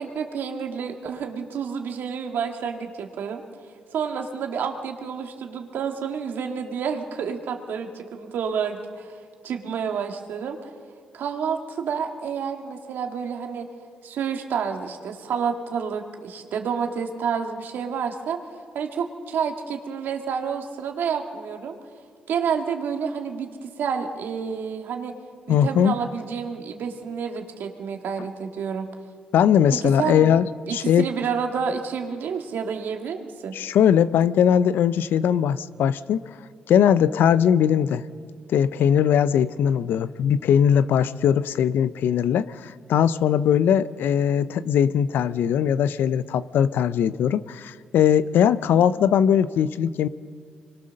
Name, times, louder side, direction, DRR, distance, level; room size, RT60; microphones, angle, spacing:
voice 1, 0.0-3.4 3.9-9.2 9.4-10.6 11.1-13.7 14.0-18.4 18.7-21.8 22.3-25.1 25.5-28.9 29.8-30.3 30.7-33.6, right 6 dB, 75° right, 4 dB, 2.0 m, -29 dB
voice 2, 25.5-25.9 29.3-30.5 30.7-31.1 33.5-36.2 36.7-38.0 38.5-50.1, left 9 dB, 75° left, 16 dB, 0.6 m, -20 dB
24.5 x 21.5 x 6.5 m, 2.1 s
supercardioid pair, 60°, 3 cm